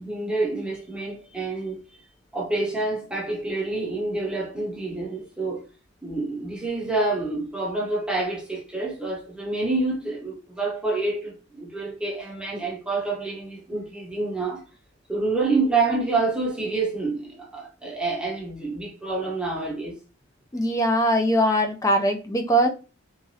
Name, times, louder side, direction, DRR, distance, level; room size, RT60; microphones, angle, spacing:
voice 1, 0.0-1.8 2.3-5.6 6.0-14.6 15.1-19.9, right 3 dB, 5° right, 0.8 m, -27 dB
voice 2, 20.5-22.7, equal, 15° left, 0.4 m, -21 dB
2.9 x 2.5 x 2.7 m
head